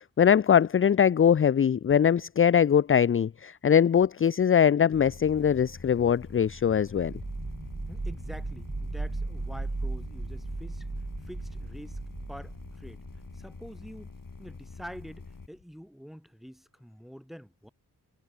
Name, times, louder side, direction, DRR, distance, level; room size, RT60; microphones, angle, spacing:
voice 1, 0.0-7.1, left 8 dB, 35° left, 0.4 m, -22 dB
sound 1, 4.9-15.5, left 4 dB, 50° left, 2.9 m, -46 dB
sound 2, 7.0-13.7, right 3 dB, 35° right, 3.8 m, -36 dB
voice 2, 7.9-10.9 11.2-12.0 12.3-13.0 13.3-14.1 14.4-17.7, equal, ahead, 5.1 m, -46 dB
cardioid pair, 45°, 41 cm